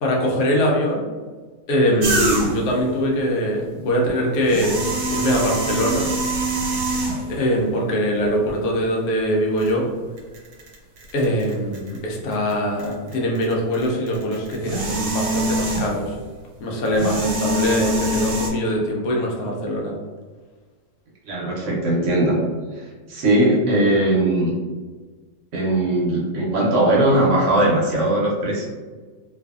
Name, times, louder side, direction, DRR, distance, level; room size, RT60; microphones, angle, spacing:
voice 1, 0.0-1.0 1.7-6.1 7.4-9.9 11.1-16.2 16.6-19.9, equal, 75° left, -2 dB, 1.0 m, -22 dB
sound 1, 2.0-2.8 4.3-7.4 8.2-8.3 9.6-9.7 10.2-12.5 12.8-16.1 16.9-18.5, right 2 dB, 85° right, 1.2 m, -24 dB
voice 2, 21.3-22.4 22.7-22.8 23.1-24.5 25.5-28.7, right 1 dB, 65° right, -4 dB, 0.9 m, -19 dB
2.6 x 2.4 x 2.3 m, 1.4 s
omnidirectional pair, 1.6 m